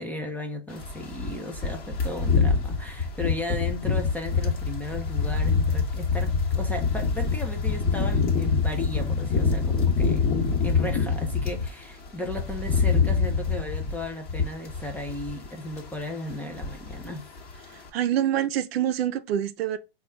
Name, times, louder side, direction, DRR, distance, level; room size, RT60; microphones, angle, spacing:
voice 1, 0.0-17.3, left 2 dB, 5° left, 0.4 m, -35 dB
sound 1, 0.8-11.7 12.1-15.5 15.7-16.0 16.3-17.1 17.4-17.6, left 5 dB, 30° left, 1.1 m, -25 dB
voice 2, 17.9-19.8, right 11 dB, 75° right, 0.5 m, -25 dB
4.1 x 2.3 x 3.3 m
hypercardioid pair, 115°, 31 cm